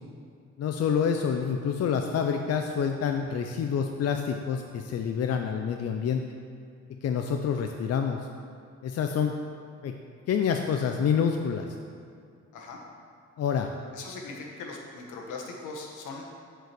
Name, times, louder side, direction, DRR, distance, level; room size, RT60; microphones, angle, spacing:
voice 1, 0.6-6.2 7.0-8.2 8.8-9.3 9.8-10.0 10.3-11.7 13.4-13.7, left 7 dB, 55° left, 4 dB, 0.6 m, -27 dB
voice 2, 13.9-16.3, left 3 dB, 85° left, 0 dB, 1.4 m, -40 dB
7.6 x 4.9 x 6.8 m, 2.4 s
cardioid pair, 90°, 30 cm